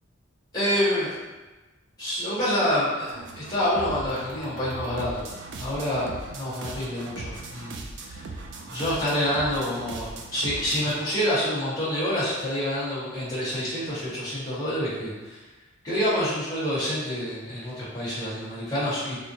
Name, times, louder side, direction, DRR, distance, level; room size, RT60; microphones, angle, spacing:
voice 1, 0.5-1.1 2.0-3.1 3.3-5.3 5.5-8.2 8.6-15.4 15.8-19.2, equal, 20° left, -11 dB, 1.3 m, -27 dB
sound 1, 3.0-10.9, right 3 dB, 55° right, 0.4 m, -39 dB
4.2 x 2.1 x 2.8 m, 1.2 s
head